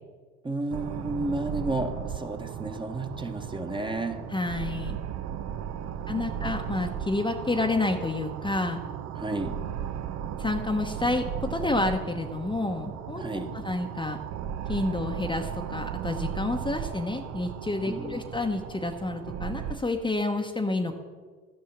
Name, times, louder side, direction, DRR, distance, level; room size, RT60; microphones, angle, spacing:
voice 1, 0.4-4.2 5.8-6.5 9.2-9.6 13.2-13.6 17.9-18.2, right 2 dB, 15° right, 5 dB, 1.1 m, -32 dB
sound 1, 0.7-19.8, right 9 dB, 60° right, 0.7 m, -36 dB
voice 2, 4.3-5.0 6.1-8.8 10.4-13.2 13.5-14.2 14.7-20.9, left 2 dB, 15° left, 4 dB, 0.9 m, -29 dB
12.0 x 5.6 x 7.2 m, 1.5 s
supercardioid pair, 75°, 30 cm